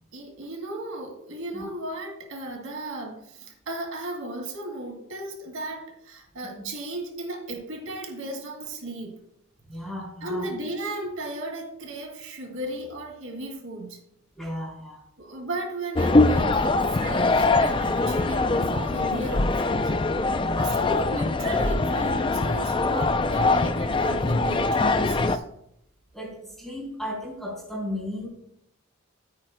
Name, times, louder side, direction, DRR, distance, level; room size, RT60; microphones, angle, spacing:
voice 1, 0.1-9.2 10.2-14.0 15.2-19.9 20.6-25.4, right 1 dB, 80° right, 3 dB, 2.4 m, -35 dB
voice 2, 9.7-10.5 14.4-15.0 20.4-20.7 26.1-28.3, left 1 dB, ahead, -5 dB, 3.5 m, -34 dB
sound 1, 16.0-25.4, left 3 dB, 25° left, 0.4 m, -23 dB
14.0 x 8.6 x 2.2 m, 0.76 s
head